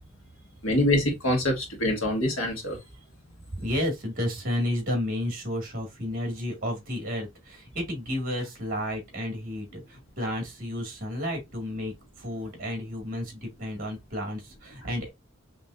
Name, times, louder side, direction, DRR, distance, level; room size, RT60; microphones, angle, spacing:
voice 1, 0.6-2.8, left 1 dB, 80° left, 1.8 m, -25 dB
voice 2, 2.8-3.1 3.6-15.1, left 1 dB, 40° right, 1.9 m, -32 dB
5.2 x 3.1 x 2.5 m
head